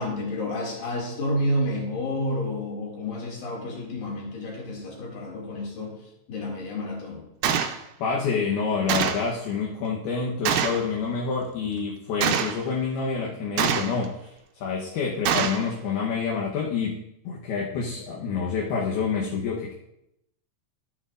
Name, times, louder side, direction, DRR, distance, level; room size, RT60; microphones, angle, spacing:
voice 1, 0.0-6.0 6.3-7.3, left 1 dB, 60° left, -2 dB, 3.8 m, -30 dB
Gunshot gunfire, 7.4-7.8 8.9-9.3 10.5-10.8 12.2-12.6 13.6-14.1 15.3-15.7, right 8 dB, 80° right, 1.9 m, -24 dB
voice 2, 7.6-14.3 14.6-19.7, left 5 dB, 75° left, -3 dB, 3.0 m, -28 dB
13.5 x 8.8 x 2.5 m, 0.83 s
omnidirectional pair, 4.6 m